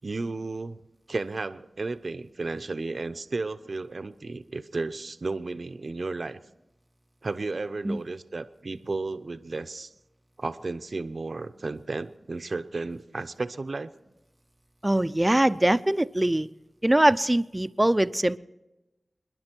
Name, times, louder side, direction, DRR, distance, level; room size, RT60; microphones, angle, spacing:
voice 1, 0.0-0.8 1.1-6.4 7.2-9.9 10.4-13.9, right 3 dB, 65° right, 9 dB, 0.7 m, -33 dB
voice 2, 14.8-16.5 16.8-18.4, right 1 dB, 20° right, 13 dB, 0.7 m, -22 dB
29.0 x 10.5 x 4.5 m, 1.0 s
cardioid pair, 45°, 0 cm